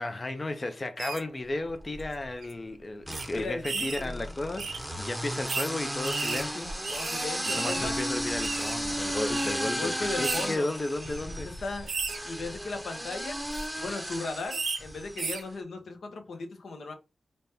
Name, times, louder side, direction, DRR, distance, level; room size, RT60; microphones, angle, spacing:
voice 1, 0.0-6.9 7.5-11.5, left 2 dB, 35° left, 0.4 m, -34 dB
sound 1, 1.0-1.2 2.0-2.1 2.4-2.5 3.1-3.3 3.6-4.0 4.6-4.8 5.5-5.7 6.0-7.9 8.1-8.7 9.3-9.5 10.2-10.5 11.0-11.2 11.9-12.2 13.3-13.7 14.5-14.8 15.2-15.4, right 4 dB, 80° right, 0.7 m, -34 dB
sound 2, 1.6-2.3 3.0-15.3, equal, 5° right, 0.7 m, -34 dB
voice 2, 3.3-4.2 6.9-8.0 9.4-10.7 11.6-11.9 12.2-13.4 13.8-16.9, left 3 dB, 80° left, 0.7 m, -37 dB
4.0 x 2.2 x 3.4 m
cardioid pair, 55°, 0 cm